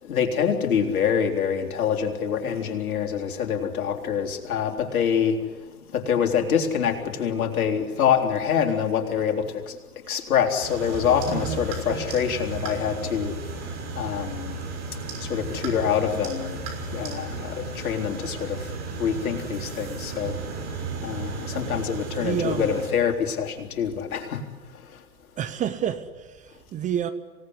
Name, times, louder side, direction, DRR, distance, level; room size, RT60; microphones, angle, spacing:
voice 1, 0.0-5.4 5.9-9.8 10.1-14.6 14.9-16.6 16.9-20.4 20.7-24.4 24.7-25.0, left 7 dB, 65° left, 3 dB, 3.9 m, -26 dB
sound 1, 10.6-22.9, right 4 dB, 35° right, 6.2 m, -34 dB
voice 2, 11.3-11.6 22.2-22.8 25.4-27.1, right 9 dB, 15° right, 10 dB, 0.9 m, -29 dB
27.0 x 18.0 x 9.8 m, 1.4 s
hypercardioid pair, 120°, 46 cm